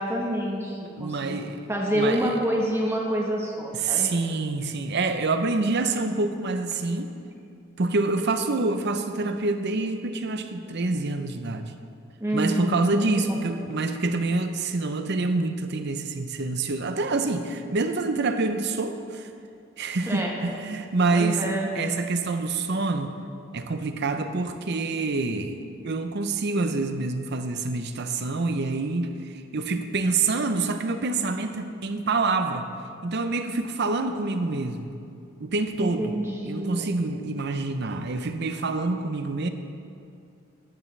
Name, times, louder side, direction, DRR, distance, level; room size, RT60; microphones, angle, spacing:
voice 1, 0.0-1.4 1.7-4.1 12.2-13.4 20.1-20.3 21.1-21.7 35.8-36.9, equal, 10° right, -1 dB, 1.2 m, -27 dB
voice 2, 1.0-1.6 1.9-2.3 3.7-7.1 7.8-11.7 12.3-19.3 19.8-23.1 23.5-25.6 25.8-32.7 33.0-34.9 35.4-36.1 36.4-39.5, right 3 dB, 50° right, 8 dB, 0.6 m, -27 dB
14.5 x 9.8 x 3.3 m, 2.5 s
head